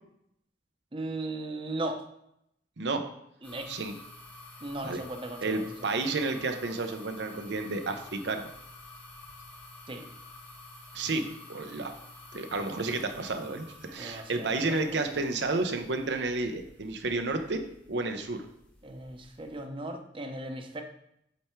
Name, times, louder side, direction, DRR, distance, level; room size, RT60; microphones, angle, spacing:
voice 1, 0.9-2.0 3.4-3.7 4.6-5.6 9.9-10.1 12.3-12.4 14.0-14.8 18.8-20.8, right 2 dB, 30° right, 5 dB, 0.7 m, -37 dB
sound 1, 3.4-19.6, left 2 dB, 10° left, 1.0 m, -50 dB
voice 2, 5.4-8.5 10.9-11.2 11.5-11.9 12.3-17.6 17.9-18.4, right 3 dB, 70° right, 6 dB, 0.7 m, -31 dB
7.8 x 3.4 x 4.4 m, 0.76 s
head